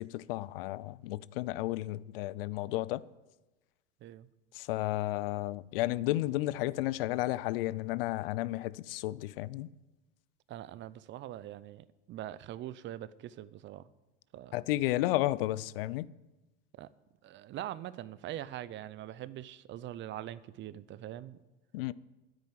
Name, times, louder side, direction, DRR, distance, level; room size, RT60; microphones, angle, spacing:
voice 1, 0.0-3.0 4.5-9.7 14.5-16.1 21.7-21.9, left 16 dB, 75° left, 0.5 m, -32 dB
voice 2, 10.5-13.9 14.3-14.6 16.8-16.9 17.2-21.4, right 12 dB, 40° right, 0.6 m, -43 dB
9.4 x 9.0 x 9.3 m
hypercardioid pair, 100°, 29 cm